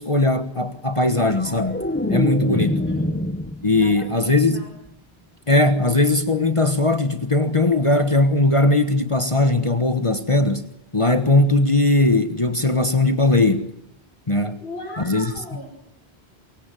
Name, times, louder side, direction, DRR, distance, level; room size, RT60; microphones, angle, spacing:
voice 1, 0.0-1.8 2.1-2.8 3.6-4.6 5.5-10.6 10.9-13.7 14.3-14.6 15.0-15.3, left 2 dB, 30° left, 1.5 m, -19 dB
sound 1, 1.0-4.1 4.5-4.9, left 1 dB, 10° left, 1.0 m, -26 dB
voice 2, 2.5-3.1 3.7-4.7 14.6-15.7, left 1 dB, 70° left, 5.5 m, -37 dB
24.0 x 23.5 x 7.7 m
omnidirectional pair, 1.1 m